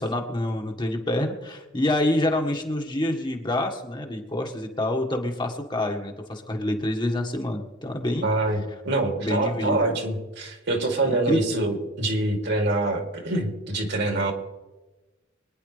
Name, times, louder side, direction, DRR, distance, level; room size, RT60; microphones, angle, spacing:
voice 1, 0.0-8.3 9.2-9.9 11.0-11.4, left 1 dB, 25° left, 2 dB, 1.6 m, -27 dB
voice 2, 8.2-14.3, right 2 dB, 60° right, 2 dB, 2.8 m, -25 dB
24.5 x 10.5 x 3.3 m, 1.1 s
head